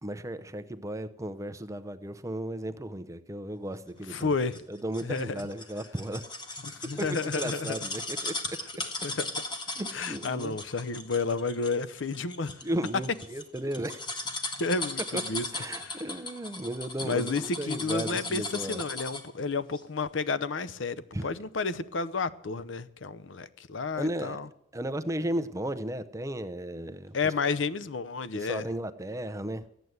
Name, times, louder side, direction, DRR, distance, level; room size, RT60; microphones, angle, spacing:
voice 1, 0.0-4.3 4.7-6.2 7.0-8.3 9.8-10.6 12.6-14.0 15.1-15.2 15.5-18.8 21.1-21.3 23.9-24.4 24.7-27.3 28.3-29.6, right 1 dB, 15° right, 0.7 m, -35 dB
voice 2, 4.1-4.6 5.0-5.4 6.6-7.8 9.0-9.4 9.9-12.6 14.6-15.4 15.8-16.0 17.0-20.9 21.2-24.5 27.1-28.7, left 4 dB, 90° left, 0.7 m, -31 dB
sound 1, 4.2-19.4 19.7-19.8, left 2 dB, 25° left, 1.6 m, -37 dB
14.0 x 9.1 x 8.0 m
head